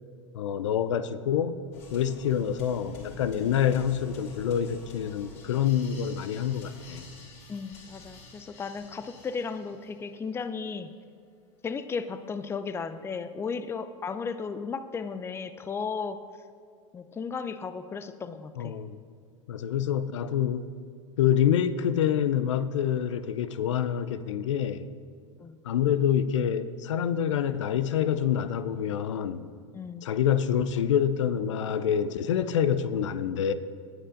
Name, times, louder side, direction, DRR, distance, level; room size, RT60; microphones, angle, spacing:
voice 1, 0.3-1.6 1.9-7.0 18.6-19.0 19.5-20.7 21.2-24.9 25.6-29.5 30.0-33.5, left 9 dB, 75° left, 13 dB, 0.5 m, -26 dB
sound 1, 1.7-10.2, left 2 dB, 45° left, 2.9 m, -48 dB
voice 2, 7.5-10.9 11.6-16.2 16.9-18.8 25.4-25.6 29.7-30.0, left 5 dB, 15° left, 12 dB, 0.5 m, -35 dB
18.5 x 8.6 x 2.6 m, 2.1 s
hypercardioid pair, 90°, 16 cm